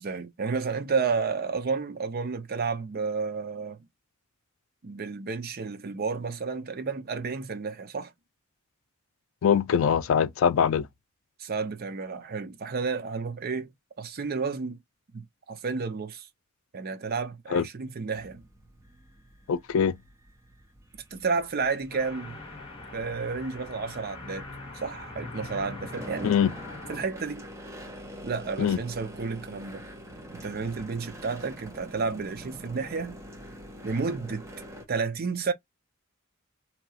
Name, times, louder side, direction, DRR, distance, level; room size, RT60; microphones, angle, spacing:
voice 1, 0.0-3.8 4.8-8.1 11.4-13.7 14.0-14.8 15.1-16.3 16.7-18.4 20.9-22.4 22.9-24.5 24.8-26.4 26.9-27.5 28.2-29.9 30.3-33.2 33.8-34.4 34.9-35.5, right 4 dB, 50° right, 0.5 m, -31 dB
voice 2, 9.4-10.9 17.5-17.6 19.5-20.0 26.2-26.5 28.6-28.8, left 7 dB, 70° left, 0.3 m, -23 dB
sound 1, 18.1-34.9, equal, 15° right, 0.8 m, -46 dB
sound 2, 21.9-27.0, left 2 dB, 25° left, 1.1 m, -42 dB
2.9 x 2.3 x 2.8 m
head